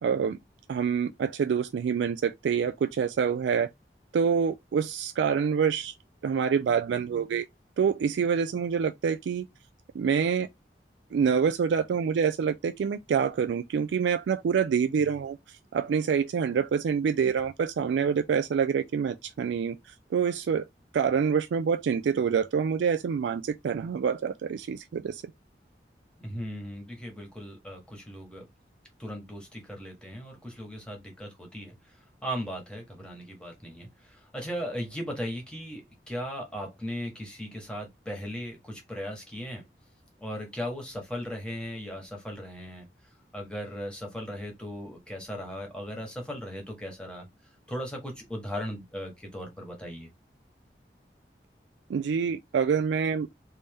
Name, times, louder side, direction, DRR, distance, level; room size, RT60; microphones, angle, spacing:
voice 1, 0.0-0.4 0.7-3.7 4.1-5.9 6.2-7.5 7.8-9.5 9.9-10.5 11.1-20.7 20.9-25.2 51.9-53.3, right 6 dB, 90° right, 0.3 m, -26 dB
voice 2, 26.2-28.4 29.0-39.6 40.2-42.9 43.3-47.3 47.7-50.1, equal, 5° left, 1.2 m, -37 dB
3.3 x 2.7 x 3.4 m
head